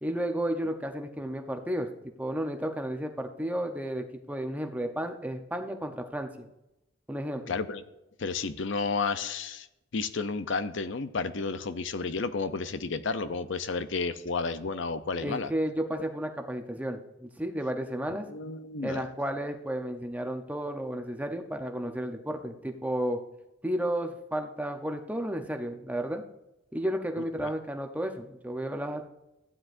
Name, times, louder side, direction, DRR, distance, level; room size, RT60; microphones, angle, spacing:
voice 1, 0.0-1.9 2.2-6.4 7.1-7.5 15.2-18.2 18.8-23.2 23.6-26.2 26.7-29.1, right 1 dB, 10° right, 5 dB, 0.7 m, -32 dB
voice 2, 7.5-7.8 8.2-9.7 9.9-15.5 16.0-16.1 18.3-19.0 27.4-27.5, left 4 dB, 65° left, 11 dB, 0.6 m, -32 dB
15.0 x 9.7 x 2.6 m, 0.91 s
head